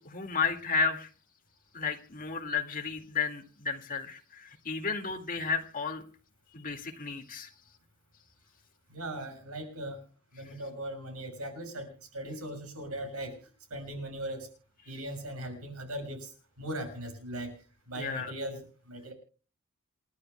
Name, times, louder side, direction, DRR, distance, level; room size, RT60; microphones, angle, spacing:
voice 1, 0.1-1.1 1.7-6.0 6.5-7.5 18.0-18.3, left 5 dB, 40° left, 4 dB, 2.0 m, -32 dB
voice 2, 8.9-10.0 10.3-13.4 13.7-14.5 14.9-16.3 16.6-17.5 17.9-19.1, right 1 dB, 90° right, 5 dB, 6.6 m, -39 dB
29.0 x 12.0 x 2.2 m, 0.38 s
head